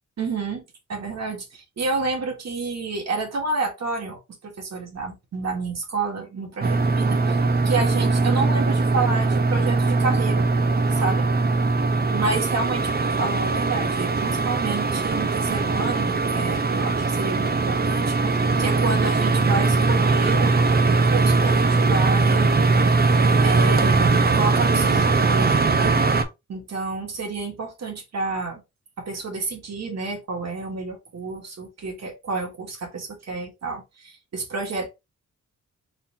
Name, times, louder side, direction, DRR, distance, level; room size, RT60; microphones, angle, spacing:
voice 1, 0.2-0.6 0.9-10.5 10.9-11.3 12.1-18.2 18.6-20.5 20.9-22.8 23.4-25.9 26.5-28.6 29.0-34.9, right 4 dB, 60° right, 1.6 m, -29 dB
sound 1, 6.6-26.2, right 3 dB, 30° right, 0.6 m, -20 dB
4.3 x 4.0 x 2.6 m
wide cardioid pair, 165°, 30 cm